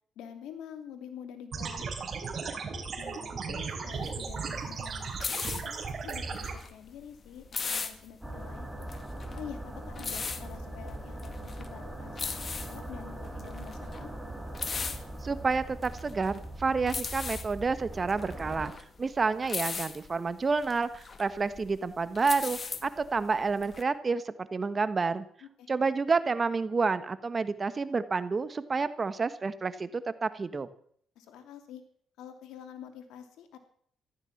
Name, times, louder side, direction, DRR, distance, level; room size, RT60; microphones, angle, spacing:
voice 1, 0.2-2.5 2.9-8.7 9.3-14.1 25.4-25.7 31.2-31.8 32.2-33.6, left 8 dB, 85° left, 8 dB, 2.6 m, -47 dB
sound 1, 1.5-6.5, right 5 dB, 50° right, 4.1 m, -36 dB
sound 2, 3.9-23.8, left 5 dB, 40° left, 1.7 m, -39 dB
sound 3, 8.2-18.7, right 1 dB, 5° right, 4.1 m, -41 dB
voice 2, 15.2-18.7 19.0-25.2 25.7-30.7, right 4 dB, 35° right, 13 dB, 1.3 m, -29 dB
15.0 x 12.5 x 7.3 m, 0.62 s
cardioid pair, 90°, 0 cm